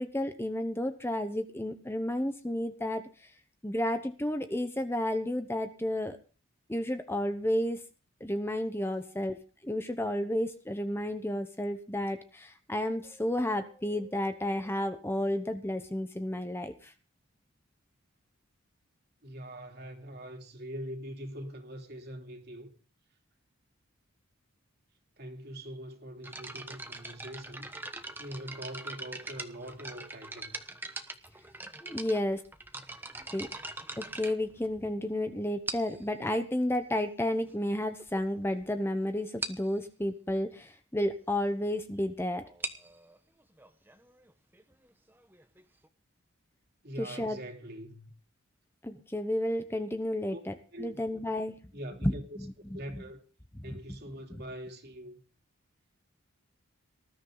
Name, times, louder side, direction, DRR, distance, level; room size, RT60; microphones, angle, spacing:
voice 1, 0.0-3.3 3.6-6.2 6.7-7.8 8.2-9.4 9.6-16.9 31.8-32.4 33.3-33.5 34.0-42.5 47.0-47.4 48.8-51.5 52.0-52.1 52.7-53.0, left 1 dB, 10° left, 0.9 m, -32 dB
voice 2, 19.2-22.8 25.2-27.7 28.2-30.5 46.8-48.1 50.3-50.4 50.7-51.0 51.7-52.4 52.7-53.2 53.6-55.1, equal, 50° right, 3.2 m, -43 dB
sound 1, 26.2-35.1 35.7-36.1 36.9-37.0 37.6-37.7 38.0-38.2 38.5-38.6 38.9-39.0 39.4-39.7 42.4-45.9, right 2 dB, 10° right, 1.1 m, -42 dB
19.5 x 13.0 x 4.0 m
head